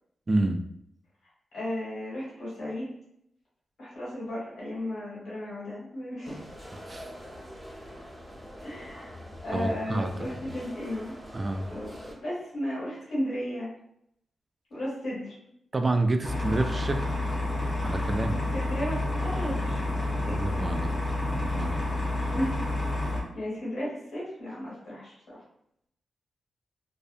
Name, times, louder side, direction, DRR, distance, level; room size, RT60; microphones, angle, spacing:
voice 1, 0.3-0.6 6.9-7.1 9.5-10.1 11.3-11.7 15.7-17.1 17.8-18.4 20.2-20.9 21.3-21.9, right 2 dB, 35° right, 6 dB, 0.3 m, -28 dB
voice 2, 1.5-2.9 3.8-6.5 8.6-9.1 9.4-11.1 11.7-13.7 14.7-15.3 18.2-19.8 20.2-20.4 22.3-22.6 23.0-25.4, left 1 dB, 80° left, -8 dB, 1.4 m, -34 dB
sound 1, 6.2-12.1, equal, 20° right, 0.8 m, -44 dB
sound 2, 16.2-23.2, left 2 dB, 45° left, 0.7 m, -29 dB
2.6 x 2.1 x 2.5 m, 0.74 s
cardioid pair, 70°, 0 cm